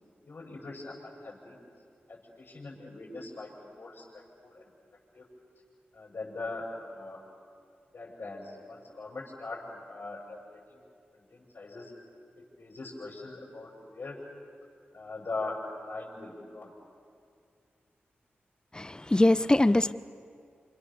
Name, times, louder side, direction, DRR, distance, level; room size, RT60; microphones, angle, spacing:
voice 1, 0.2-1.6 2.1-4.7 5.1-5.4 5.9-7.2 7.9-10.8 11.1-11.9 12.4-14.2 14.9-16.7, left 3 dB, 70° left, -5 dB, 7.1 m, -41 dB
voice 2, 18.7-19.9, left 1 dB, 20° left, 15 dB, 0.9 m, -23 dB
28.0 x 27.0 x 7.1 m, 2.4 s
cardioid pair, 45°, 4 cm